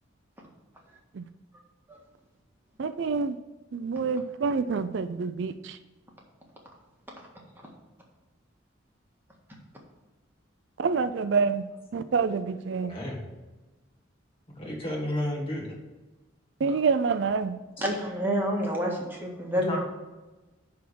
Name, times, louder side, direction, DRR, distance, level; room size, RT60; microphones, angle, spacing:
voice 1, 2.8-3.4 3.7-5.8 10.8-11.6 11.9-12.9 16.6-17.6, right 5 dB, 60° right, 11 dB, 0.4 m, -27 dB
voice 2, 12.8-13.2 14.6-15.7 19.5-19.8, left 1 dB, 30° left, -1 dB, 1.8 m, -32 dB
voice 3, 17.8-19.8, equal, 10° right, -2 dB, 1.6 m, -28 dB
10.5 x 3.6 x 6.2 m, 1.1 s
head